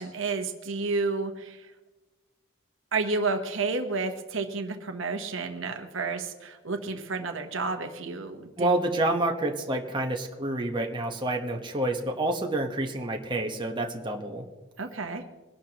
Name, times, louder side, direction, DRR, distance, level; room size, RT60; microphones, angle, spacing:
voice 1, 0.0-1.7 2.9-8.7 14.8-15.2, right 3 dB, 60° right, 5 dB, 1.1 m, -31 dB
voice 2, 8.6-14.4, right 1 dB, 20° right, 1 dB, 1.2 m, -28 dB
22.0 x 12.0 x 3.0 m, 1.2 s
head